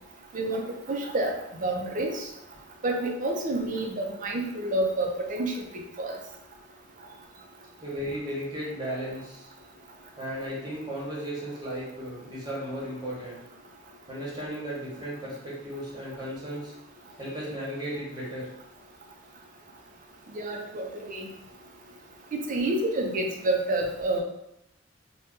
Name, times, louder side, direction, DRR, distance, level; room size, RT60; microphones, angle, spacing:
voice 1, 0.3-1.3 1.6-2.2 2.8-6.2 20.3-21.3 22.3-24.2, right 2 dB, 45° right, 1 dB, 0.5 m, -29 dB
voice 2, 7.8-9.5 10.2-13.4 14.1-16.7 17.1-18.5, equal, 20° right, -7 dB, 1.2 m, -35 dB
2.7 x 2.2 x 3.6 m, 0.80 s
head